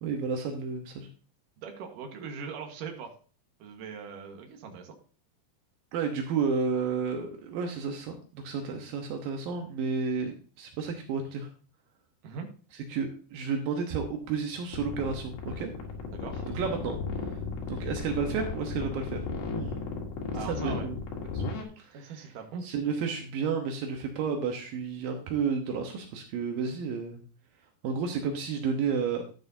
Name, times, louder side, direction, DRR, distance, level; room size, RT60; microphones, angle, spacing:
voice 1, 0.0-1.1 5.9-11.5 12.9-15.7 16.5-17.0 17.7-19.3 19.5-19.8 20.4-21.0 21.3-21.4 21.8-22.3 22.6-27.2 27.8-29.2, right 5 dB, 80° right, 3 dB, 2.0 m, -31 dB
voice 2, 1.6-3.1 3.6-5.0 12.2-12.5 16.1-16.5 20.3-20.9 21.9-22.8, right 5 dB, 65° right, 3 dB, 2.2 m, -41 dB
sound 1, 14.7-21.6, left 4 dB, 65° left, 3.7 m, -35 dB
12.0 x 9.2 x 2.7 m, 0.38 s
omnidirectional pair, 5.7 m